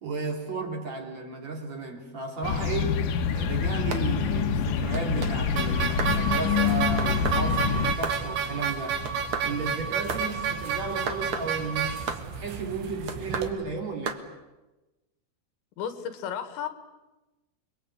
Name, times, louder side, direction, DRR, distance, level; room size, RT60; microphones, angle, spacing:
voice 1, 0.0-9.2 9.4-14.2, right 4 dB, 40° right, 3.8 m, -34 dB
sound 1, 2.4-8.0, left 6 dB, 60° left, 2.6 m, -26 dB
sound 2, 3.9-4.0 4.9-5.3 6.0-6.2 7.0-7.4 8.0-8.2 9.0-9.5 10.1-10.2 11.1-11.5 12.1-12.2 13.1-13.5 14.1-14.2, right 5 dB, 55° right, 1.5 m, -33 dB
sound 3, 5.6-13.5, right 6 dB, 80° right, 4.5 m, -31 dB
voice 2, 15.8-16.7, left 8 dB, 90° left, 4.2 m, -33 dB
29.5 x 22.5 x 8.4 m
omnidirectional pair, 5.0 m